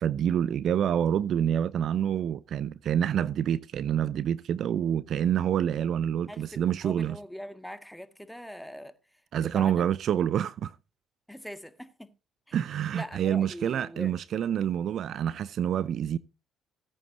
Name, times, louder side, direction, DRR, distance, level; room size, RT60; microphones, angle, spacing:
voice 1, 0.0-7.2 9.3-10.7 12.5-16.2, right 9 dB, 60° right, 0.6 m, -27 dB
voice 2, 6.3-9.9 11.3-12.1 12.5-12.6 12.9-14.2, equal, ahead, 1.7 m, -42 dB
17.5 x 9.3 x 2.7 m
hypercardioid pair, 60°, 0 cm